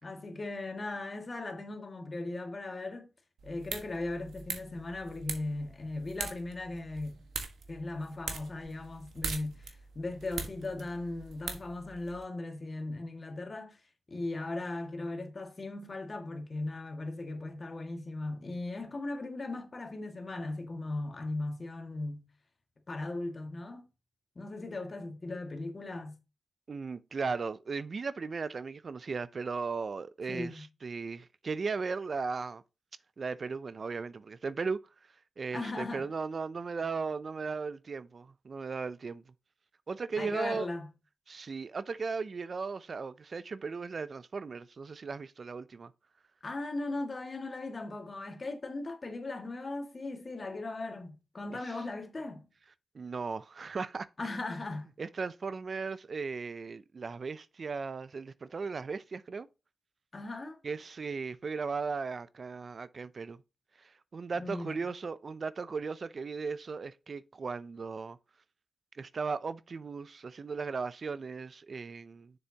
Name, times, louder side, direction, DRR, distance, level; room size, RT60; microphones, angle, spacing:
voice 1, 0.0-3.1 3.4-7.2 7.7-13.8 14.1-22.3 22.9-23.9 24.4-26.2 30.3-30.7 35.5-36.1 40.2-40.9 46.4-52.5 54.2-54.9 60.1-60.6 64.4-64.8, left 2 dB, 40° left, 1.8 m, -38 dB
sound 1, 3.4-12.2, right 5 dB, 85° right, 1.3 m, -42 dB
voice 2, 26.7-32.6 33.2-34.8 35.4-39.2 39.9-40.7 41.3-45.9 52.9-54.1 55.0-59.5 60.6-63.4 63.8-68.2 68.9-72.3, right 4 dB, 50° right, 0.4 m, -37 dB
7.0 x 6.8 x 2.8 m
cardioid pair, 70°, 0 cm